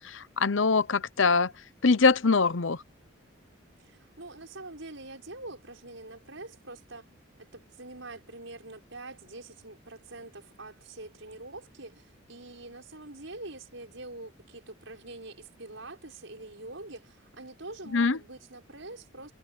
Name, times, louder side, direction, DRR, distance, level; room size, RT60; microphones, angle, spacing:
voice 1, 0.4-1.5 1.8-2.8 17.9-18.2, left 4 dB, 70° left, 0.8 m, -22 dB
voice 2, 3.8-7.1 7.4-19.3, right 2 dB, 70° right, 6.3 m, -45 dB
head